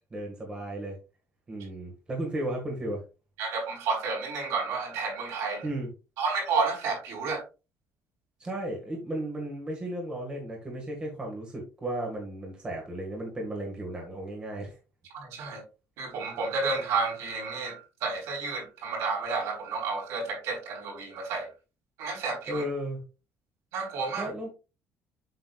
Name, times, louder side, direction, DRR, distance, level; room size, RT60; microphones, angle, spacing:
voice 1, 0.1-1.0 1.5-3.0 5.6-5.9 8.4-14.8 22.5-23.0 24.2-24.5, right 1 dB, 20° right, -1 dB, 1.8 m, -34 dB
voice 2, 3.4-5.7 6.2-7.4 15.1-15.6 16.0-21.5 22.0-22.6 23.7-24.3, right 4 dB, 70° right, 0 dB, 4.0 m, -31 dB
8.0 x 6.7 x 2.4 m, 0.29 s
cardioid pair, 175°, 5 cm